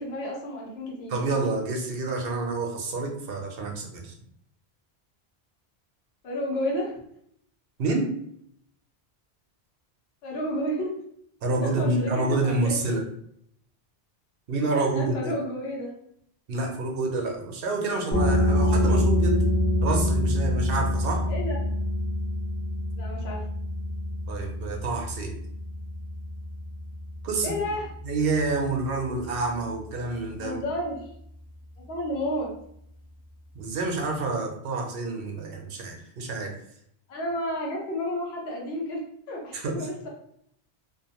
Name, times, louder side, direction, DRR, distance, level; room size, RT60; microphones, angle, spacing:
voice 1, 0.0-1.2 6.2-6.9 10.2-11.0 11.6-12.8 14.7-15.9 21.3-21.6 22.9-23.4 27.4-27.9 30.4-31.1 31.9-32.5 37.1-39.0 39.3-40.1, left 1 dB, 75° left, -2 dB, 1.0 m, -31 dB
voice 2, 1.1-4.1 7.8-8.1 11.4-13.0 14.5-15.3 16.5-19.4 19.8-21.3 24.3-25.4 27.2-27.6 28.0-30.6 33.5-36.5 39.5-39.9, right 3 dB, 65° right, 2 dB, 0.8 m, -28 dB
sound 1, 18.1-29.5, left 1 dB, 10° left, 0.4 m, -26 dB
2.6 x 2.1 x 2.8 m, 0.70 s
omnidirectional pair, 1.1 m